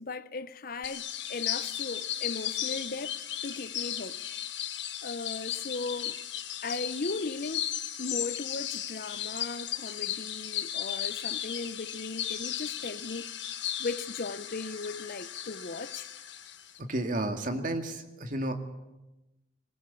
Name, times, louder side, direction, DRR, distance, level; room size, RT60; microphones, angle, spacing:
voice 1, 0.0-3.2 3.4-4.2 5.0-6.2 6.6-7.7 8.0-13.3 13.8-16.1, left 3 dB, 50° left, 0.7 m, -37 dB
sound 1, 0.8-16.8, left 11 dB, 75° left, 1.5 m, -36 dB
voice 2, 16.9-18.5, right 1 dB, 45° right, 2.1 m, -31 dB
21.0 x 19.5 x 8.3 m
head